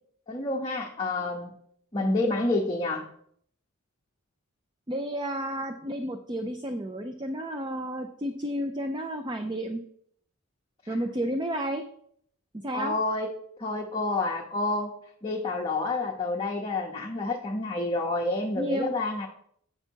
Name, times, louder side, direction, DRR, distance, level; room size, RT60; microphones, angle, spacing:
voice 1, 0.3-1.5 1.9-3.1 12.7-13.3 13.6-14.9 15.2-19.3, left 2 dB, 25° left, -2 dB, 0.8 m, -29 dB
voice 2, 4.9-9.8 10.9-11.8 12.5-13.0 18.6-18.9, equal, 20° right, 6 dB, 0.5 m, -31 dB
8.7 x 5.7 x 4.5 m, 0.66 s
head